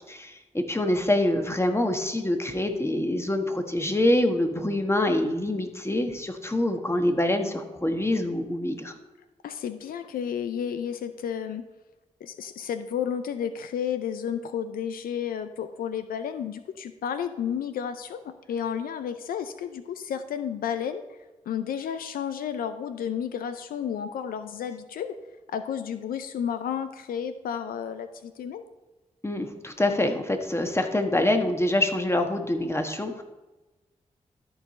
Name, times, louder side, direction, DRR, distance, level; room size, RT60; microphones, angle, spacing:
voice 1, 0.1-8.9 29.2-33.2, left 1 dB, 20° left, 5 dB, 1.3 m, -25 dB
voice 2, 9.4-11.6 12.2-21.0 21.5-25.1 25.5-28.6, left 8 dB, 90° left, 10 dB, 0.4 m, -32 dB
13.0 x 4.6 x 4.2 m, 1.1 s
supercardioid pair, 40°, 14 cm